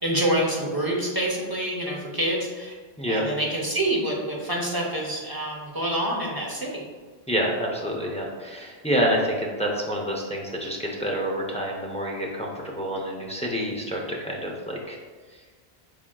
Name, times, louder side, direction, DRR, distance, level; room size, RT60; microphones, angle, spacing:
voice 1, 0.0-2.8 3.1-6.8, right 1 dB, 25° right, -3 dB, 0.6 m, -27 dB
voice 2, 7.3-15.0 15.3-15.4, equal, 10° left, -1 dB, 0.3 m, -28 dB
5.9 x 3.6 x 2.2 m, 1.5 s
omnidirectional pair, 1.1 m